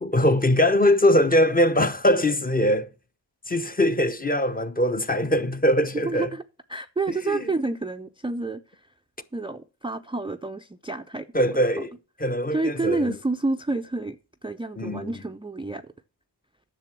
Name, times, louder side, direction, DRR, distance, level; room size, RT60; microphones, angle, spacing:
voice 1, 0.0-2.9 3.5-6.3 7.2-7.5 11.3-11.9 12.2-13.2 14.8-15.1, left 1 dB, 20° left, 0.8 m, -22 dB
voice 2, 6.0-6.4 6.7-8.9 9.3-11.3 12.5-15.9, right 3 dB, 10° right, 0.4 m, -29 dB
10.5 x 6.8 x 5.9 m
wide cardioid pair, 100°, 44 cm